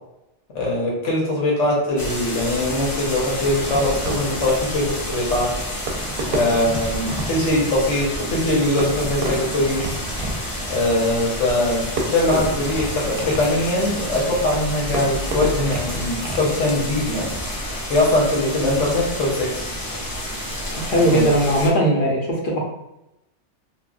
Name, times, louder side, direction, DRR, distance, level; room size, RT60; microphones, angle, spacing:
voice 1, 0.5-5.5 6.3-10.0 10.7-17.4 17.9-19.7 21.1-21.2, left 1 dB, 80° left, -4 dB, 1.2 m, -21 dB
sound 1, 2.0-21.7, left 1 dB, 35° left, 0.3 m, -29 dB
Fireworks, 3.4-17.3, right 2 dB, 60° right, 0.7 m, -32 dB
voice 2, 20.8-22.6, right 1 dB, 55° left, -3 dB, 0.7 m, -19 dB
3.0 x 2.2 x 2.3 m, 0.89 s
omnidirectional pair, 1.2 m